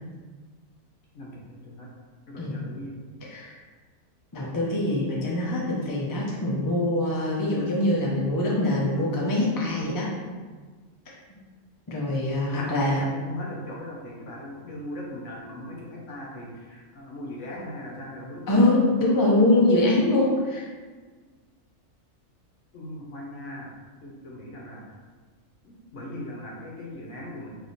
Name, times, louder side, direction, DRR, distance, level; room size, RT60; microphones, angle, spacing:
voice 1, 1.1-1.9 2.3-2.9 12.1-18.7 22.7-23.7 24.0-25.0 25.6-27.6, left 1 dB, 65° left, -3 dB, 1.1 m, -39 dB
voice 2, 3.2-3.6 4.3-10.1 11.1-11.2 11.9-13.1 18.5-20.6, left 1 dB, 25° left, -4 dB, 0.4 m, -23 dB
3.3 x 2.8 x 4.1 m, 1.4 s
omnidirectional pair, 1.4 m